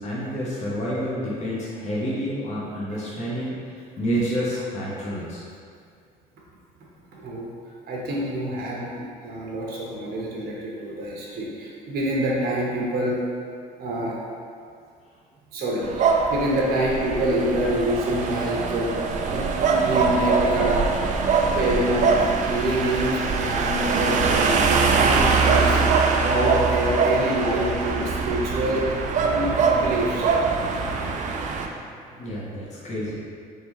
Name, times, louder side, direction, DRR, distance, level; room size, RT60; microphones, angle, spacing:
voice 1, 0.0-5.4 32.2-33.2, equal, 45° left, -7 dB, 1.0 m, -29 dB
voice 2, 7.1-7.5 7.9-13.2 13.8-14.2 15.5-19.0 19.3-19.4 19.7-20.8 21.4-22.2 22.5-25.8 26.1-28.9 29.2-30.3, right 1 dB, 65° right, -4 dB, 0.9 m, -26 dB
sound 1, 15.8-31.7, right 4 dB, 45° right, 0.4 m, -23 dB
3.7 x 3.3 x 3.0 m, 2.2 s
cardioid pair, 110°, 17 cm